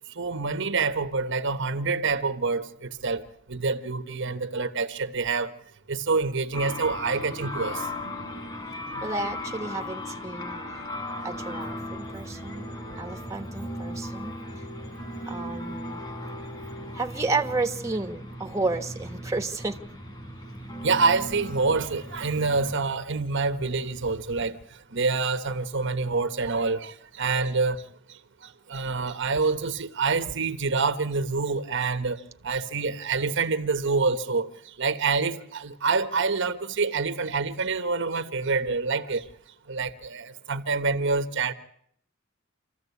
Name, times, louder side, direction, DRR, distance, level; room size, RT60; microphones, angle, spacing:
voice 1, 0.1-3.2 3.5-5.5 5.9-8.3 8.9-9.0 20.8-24.6 24.9-27.8 28.1-39.3 39.7-41.5, right 4 dB, 65° right, 1.2 m, -27 dB
sound 1, 6.5-22.7, left 1 dB, 25° left, 5.7 m, -37 dB
voice 2, 9.0-10.6 11.2-12.7 13.0-14.3 15.3-16.0 16.9-19.8, right 3 dB, 15° right, 1.4 m, -31 dB
27.0 x 14.5 x 8.3 m
head